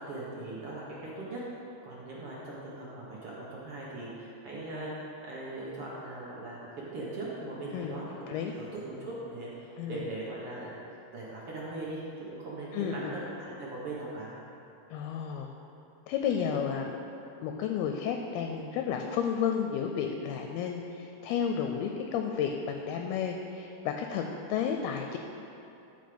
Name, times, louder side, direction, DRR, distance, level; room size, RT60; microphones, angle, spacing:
voice 1, 0.0-1.4 1.8-4.9 5.3-8.0 8.5-10.8 11.1-14.3, right 2 dB, 60° right, -6 dB, 1.5 m, -40 dB
voice 2, 12.7-13.2 14.9-15.5 16.1-17.0 17.4-24.2 24.5-25.2, left 7 dB, 80° left, 4 dB, 2.4 m, -32 dB
13.0 x 5.5 x 5.2 m, 2.9 s
omnidirectional pair, 4.6 m